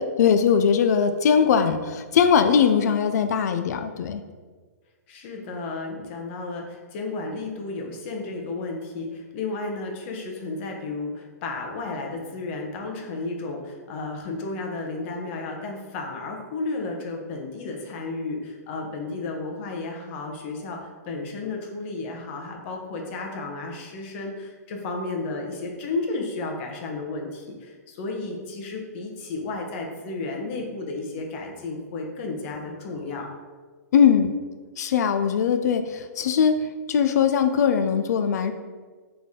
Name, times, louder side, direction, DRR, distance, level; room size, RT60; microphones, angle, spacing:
voice 1, 0.0-4.2 33.9-34.3 34.8-38.5, left 7 dB, 70° left, 8 dB, 0.4 m, -20 dB
voice 2, 5.1-33.3, left 3 dB, 45° left, 1 dB, 0.9 m, -33 dB
4.0 x 3.3 x 3.6 m, 1.4 s
hypercardioid pair, 130°, 9 cm